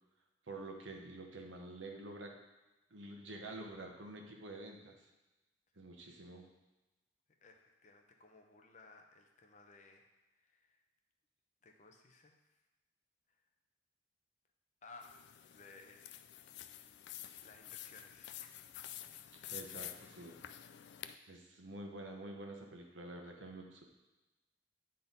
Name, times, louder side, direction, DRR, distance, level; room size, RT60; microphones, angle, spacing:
voice 1, 0.5-2.3 2.9-5.0 5.8-6.5 19.5-20.4 21.3-23.9, right 2 dB, 85° right, 2 dB, 1.0 m, -48 dB
voice 2, 7.4-10.1 10.3-10.8 11.6-12.3 14.8-16.2 16.5-17.1 17.4-18.5, left 3 dB, 40° left, 3 dB, 0.7 m, -59 dB
sound 1, 15.0-21.1, left 12 dB, 65° left, 0.3 m, -49 dB
8.8 x 3.9 x 4.0 m, 1.1 s
head